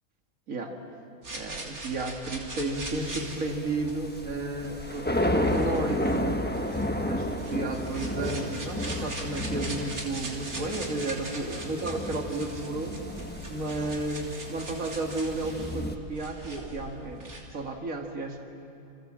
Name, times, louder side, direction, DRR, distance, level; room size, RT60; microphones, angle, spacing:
sound 1, 1.2-17.4, right 2 dB, 85° right, 3.6 m, -41 dB
voice 1, 1.3-6.4 7.0-13.0 13.5-18.4, right 2 dB, 70° right, 3 dB, 2.5 m, -33 dB
sound 2, 2.9-16.0, left 1 dB, 10° left, 1.1 m, -32 dB
sound 3, 8.9-9.2 11.5-11.8 13.1-13.2 13.7-14.0 16.0-16.9, equal, 25° right, 3.6 m, -48 dB
29.0 x 27.0 x 7.6 m, 2.6 s
omnidirectional pair, 1.5 m